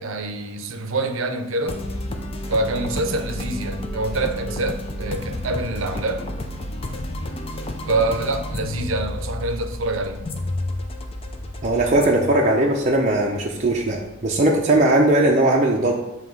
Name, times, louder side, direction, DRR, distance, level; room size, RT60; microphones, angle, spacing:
voice 1, 0.0-1.8 2.5-6.3 7.9-10.3, right 2 dB, 75° right, 7 dB, 0.6 m, -26 dB
sound 1, 1.7-15.1, left 1 dB, 30° left, 0.5 m, -31 dB
voice 2, 11.6-16.0, right 1 dB, 35° right, -1 dB, 0.5 m, -19 dB
7.3 x 2.9 x 4.6 m, 0.98 s
head